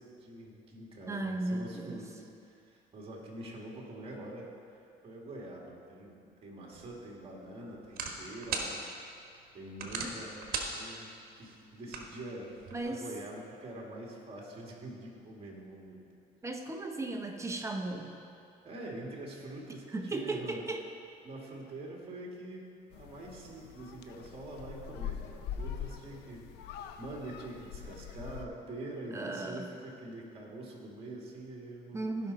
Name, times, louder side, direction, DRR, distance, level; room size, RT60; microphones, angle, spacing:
voice 1, 0.0-4.5 5.0-8.8 9.5-12.5 12.8-16.0 18.6-20.6 21.2-22.6 22.9-32.1, right 1 dB, 35° right, -2 dB, 2.2 m, -45 dB
voice 2, 1.1-2.0 12.7-13.0 16.4-18.2 19.9-20.8 29.1-29.7 31.9-32.3, right 2 dB, 15° right, 3 dB, 0.9 m, -36 dB
sound 1, 6.7-12.8, right 4 dB, 60° right, 1.4 m, -41 dB
sound 2, 22.9-28.5, left 8 dB, 85° left, 0.6 m, -43 dB
16.0 x 5.5 x 4.1 m, 2.5 s
cardioid pair, 110°, 17 cm